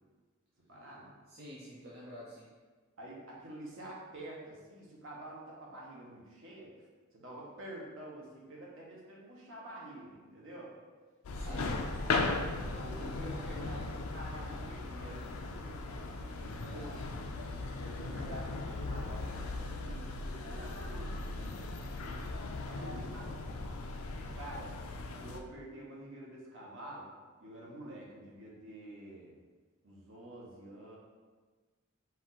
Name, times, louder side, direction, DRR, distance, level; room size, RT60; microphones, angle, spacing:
voice 1, 0.7-1.1 3.0-6.7 7.1-10.7 11.5-12.1 12.6-17.2 17.8-23.7 24.3-24.7 25.2-27.1 27.4-29.4 29.8-31.0, right 1 dB, 65° right, -4 dB, 1.1 m, -48 dB
voice 2, 1.3-2.5 11.3-11.7, equal, 45° right, -7 dB, 0.6 m, -48 dB
sound 1, 11.2-25.4, left 3 dB, 80° left, 0.4 m, -38 dB
4.3 x 2.6 x 4.0 m, 1.4 s
head